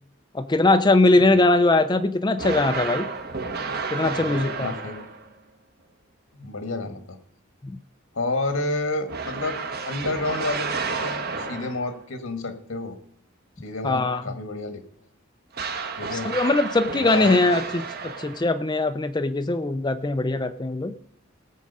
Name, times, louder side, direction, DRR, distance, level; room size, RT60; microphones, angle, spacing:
voice 1, 0.3-3.1 3.9-4.7 7.6-7.8 13.8-14.4 16.1-20.9, left 2 dB, 20° left, 9 dB, 0.5 m, -21 dB
sound 1, 2.4-5.3 9.1-12.0 15.5-18.6, right 4 dB, 45° right, 1.3 m, -31 dB
voice 2, 4.1-5.1 6.3-7.0 8.1-9.6 9.9-13.0 13.6-14.8 16.0-16.3 17.0-17.4, left 2 dB, 75° left, 8 dB, 1.5 m, -30 dB
17.5 x 7.6 x 5.4 m, 0.65 s
head